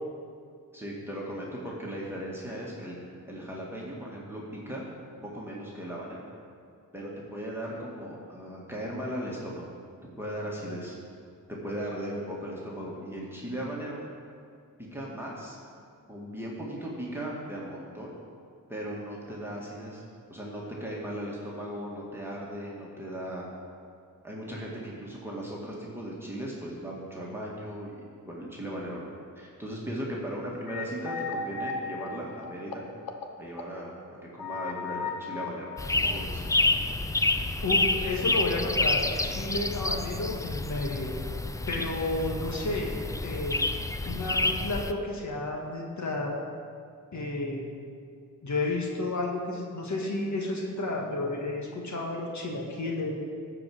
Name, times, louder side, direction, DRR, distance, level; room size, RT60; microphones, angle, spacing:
voice 1, 0.7-3.0 3.3-4.8 5.2-6.2 6.9-9.7 10.2-11.0 11.5-14.0 14.9-15.6 16.1-18.1 18.7-20.0 20.3-23.4 24.2-32.9 33.4-35.7 36.0-36.4, equal, 5° right, -5 dB, 2.0 m, -37 dB
sound 1, 30.7-33.2 33.6-33.7 34.4-36.6, left 4 dB, 80° left, 1.0 m, -36 dB
sound 2, 35.8-44.9, left 2 dB, 10° left, 0.5 m, -28 dB
voice 2, 37.6-41.1 41.7-42.9 43.2-43.6 44.0-46.4 47.1-47.7 48.4-53.2, left 2 dB, 55° left, -1 dB, 1.6 m, -31 dB
13.0 x 4.9 x 7.9 m, 2.3 s
cardioid pair, 75°, 34 cm